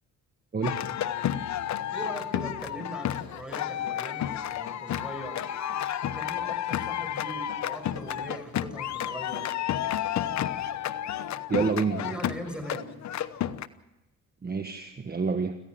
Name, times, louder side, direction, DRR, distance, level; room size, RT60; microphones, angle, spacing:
voice 1, 0.5-0.8 11.5-12.2 14.4-15.6, right 4 dB, 30° right, 7 dB, 1.4 m, -28 dB
sound 1, 0.6-13.7, left 11 dB, 65° left, 1.0 m, -31 dB
voice 2, 1.9-5.5 6.0-9.5 11.6-11.7 12.0-12.9, right 1 dB, 5° right, 6 dB, 6.1 m, -40 dB
27.0 x 15.0 x 7.6 m, 1.0 s
cardioid pair, 90°, 30 cm